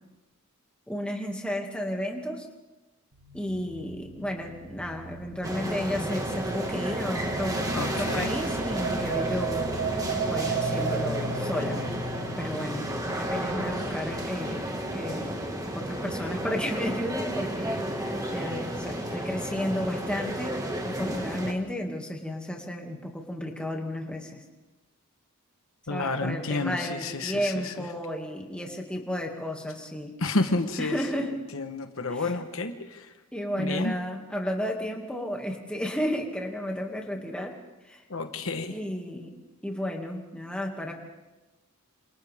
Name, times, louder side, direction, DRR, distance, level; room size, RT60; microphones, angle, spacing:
voice 1, 0.9-2.4 3.3-9.7 10.3-11.8 12.4-14.6 14.9-15.4 15.7-17.8 18.3-24.4 25.9-30.2 30.8-31.3 32.1-32.3 33.3-37.6 37.9-38.0 38.7-39.3 39.6-40.9, equal, 5° left, 0 dB, 2.2 m, -32 dB
sound 1, 3.1-15.4, right 3 dB, 80° right, 4.2 m, -35 dB
sound 2, 5.4-21.5, right 1 dB, 15° right, 1.8 m, -32 dB
voice 2, 7.8-8.3 25.9-27.8 30.2-33.1 33.6-33.9 38.1-38.7, left 3 dB, 65° left, 7 dB, 1.3 m, -30 dB
28.0 x 27.5 x 3.6 m, 1.1 s
head